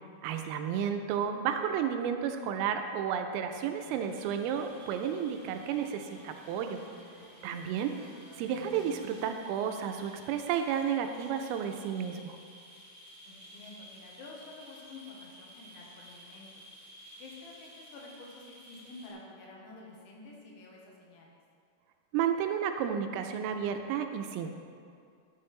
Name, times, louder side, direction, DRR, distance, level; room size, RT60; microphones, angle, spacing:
voice 1, 0.2-6.8 7.4-7.9 8.4-12.4 22.1-24.5, right 8 dB, 90° right, 6 dB, 3.3 m, -32 dB
sound 1, 3.5-10.5, right 1 dB, 50° right, 2.4 m, -55 dB
sound 2, 4.1-19.1, equal, 25° right, 1.3 m, -54 dB
voice 2, 13.3-16.5 17.2-21.4, left 3 dB, 75° left, -2 dB, 3.3 m, -50 dB
11.5 x 8.5 x 3.3 m, 2.3 s
omnidirectional pair, 5.8 m